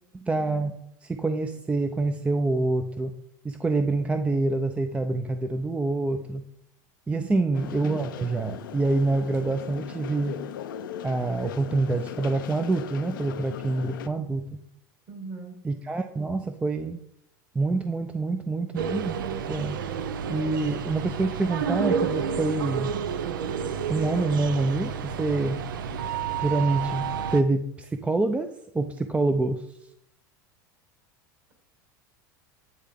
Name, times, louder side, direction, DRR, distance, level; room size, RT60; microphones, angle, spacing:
voice 1, 0.1-3.2 3.4-6.5 7.1-10.4 11.0-14.6 15.6-17.0 17.5-19.2 19.5-19.8 20.3-23.0 23.9-25.6 26.4-28.5 28.7-29.7, right 3 dB, 10° right, 8 dB, 0.4 m, -26 dB
voice 2, 7.1-7.6 15.1-15.6, right 3 dB, 45° right, 2 dB, 2.3 m, -39 dB
sound 1, 7.5-14.1, left 10 dB, 80° left, 0.5 m, -39 dB
sound 2, 18.8-27.4, right 7 dB, 80° right, 0.5 m, -30 dB
9.2 x 3.6 x 3.6 m, 0.74 s
hypercardioid pair, 90°, 11 cm